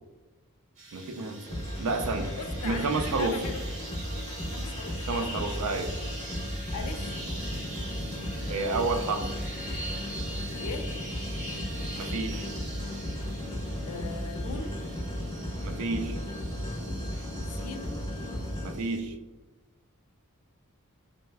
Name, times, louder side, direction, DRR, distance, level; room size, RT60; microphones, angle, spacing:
sound 1, 0.8-19.0, right 1 dB, 35° right, 0.8 m, -43 dB
voice 1, 0.9-2.3 2.6-3.5 5.1-5.9 8.5-9.2 12.0-12.5 15.6-16.2 18.6-19.1, right 3 dB, 80° right, 7 dB, 0.4 m, -30 dB
sound 2, 1.4-18.7, equal, 20° left, 0.5 m, -35 dB
voice 2, 2.4-3.6 4.5-5.5 6.7-7.2 10.5-10.9 13.9-14.7 17.5-18.0, left 5 dB, 90° left, 8 dB, 0.4 m, -40 dB
3.2 x 2.1 x 3.3 m, 1.3 s
head